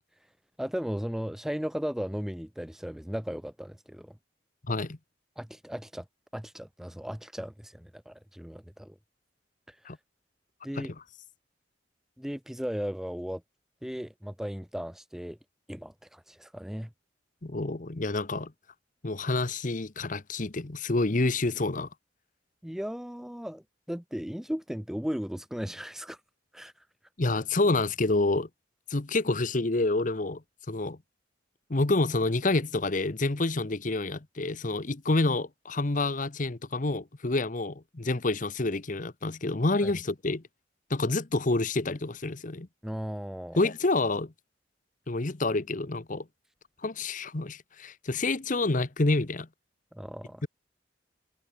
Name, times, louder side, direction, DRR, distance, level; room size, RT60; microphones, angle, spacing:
voice 1, 0.6-4.2 5.4-6.1 6.3-9.0 9.7-9.9 10.6-10.9 12.2-13.4 13.8-15.4 15.7-16.9 22.6-26.2 26.5-26.7 39.8-39.9 42.8-43.6 49.9-50.5, equal, ahead, 0.4 m, -36 dB
voice 2, 4.7-5.0 9.8-10.0 10.8-10.9 17.4-18.5 19.0-21.9 27.2-28.5 28.9-30.4 30.7-31.0 31.7-40.4 40.9-42.7 43.6-44.3 45.1-46.3 46.8-49.5, left 2 dB, 45° left, 1.0 m, -28 dB
head